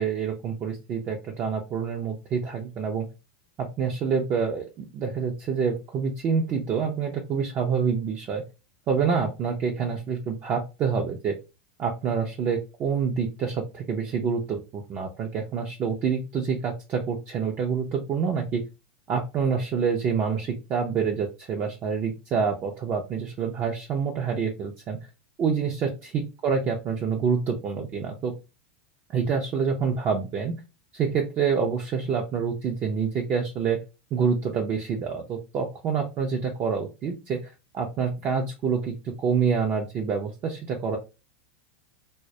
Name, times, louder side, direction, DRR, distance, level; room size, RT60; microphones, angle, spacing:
voice 1, 0.0-3.1 3.6-8.4 8.9-11.4 11.8-18.6 19.1-25.0 25.4-28.3 29.1-30.6 30.9-33.8 34.1-41.0, right 6 dB, 30° right, 2 dB, 0.4 m, -27 dB
2.2 x 2.1 x 2.6 m, 0.28 s
supercardioid pair, 135°, 7 cm